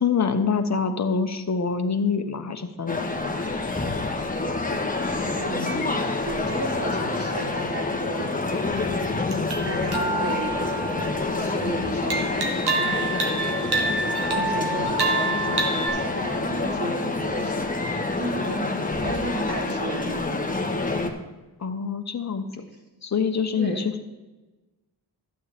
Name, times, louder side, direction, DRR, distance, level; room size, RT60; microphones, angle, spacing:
voice 1, 0.0-3.1 21.6-22.6 23.0-24.1, left 5 dB, 45° left, 7 dB, 1.1 m, -25 dB
Male speech man speaking, 2.9-21.1, left 3 dB, 20° left, 1.3 m, -27 dB
voice 2, 5.3-5.9 6.2-8.3 9.6-10.5 11.3-13.0 13.6-17.7 18.2-18.7 19.0-20.6 23.6-23.9, right 1 dB, 35° right, -4 dB, 3.1 m, -34 dB
sound 1, 9.3-11.5 12.1-15.9, right 2 dB, 80° right, 1.8 m, -27 dB
12.5 x 8.8 x 3.5 m, 1.1 s
cardioid pair, 75°, 39 cm